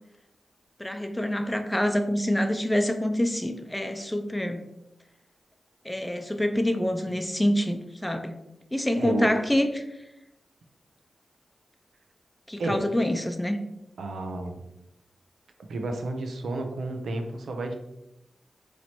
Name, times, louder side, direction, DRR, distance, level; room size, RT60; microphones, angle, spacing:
voice 1, 0.8-4.6 5.8-8.3 8.7-9.8 12.5-13.6, left 1 dB, 10° left, 6 dB, 0.4 m, -26 dB
voice 2, 9.0-9.3 12.6-12.9 14.0-14.6 15.7-17.7, right 2 dB, 90° right, 4 dB, 0.6 m, -31 dB
3.1 x 2.9 x 4.1 m, 0.87 s
wide cardioid pair, 85°, 0 cm